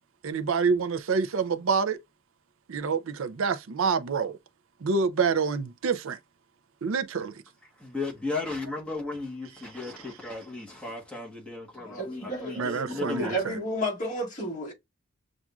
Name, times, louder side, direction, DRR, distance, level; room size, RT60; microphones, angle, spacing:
voice 1, 0.2-2.0 2.7-4.4 4.8-6.2 6.8-7.3 12.6-13.6, right 5 dB, 65° right, 0.5 m, -27 dB
voice 2, 7.8-13.4, left 3 dB, 5° left, 1.1 m, -35 dB
voice 3, 11.8-14.7, equal, 35° left, 1.9 m, -32 dB
7.1 x 2.5 x 2.3 m
head